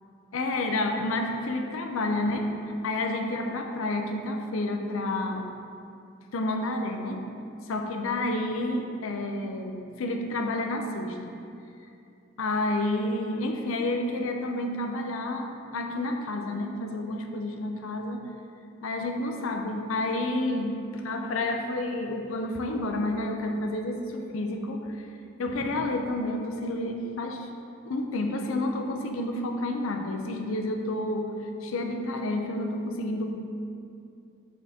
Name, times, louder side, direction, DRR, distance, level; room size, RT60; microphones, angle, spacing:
voice 1, 0.3-5.5 6.3-7.3 7.7-11.4 12.4-18.2 18.8-25.1 25.4-27.5 27.8-33.4, left 2 dB, 75° left, 4 dB, 0.5 m, -30 dB
6.3 x 5.8 x 2.7 m, 2.6 s
head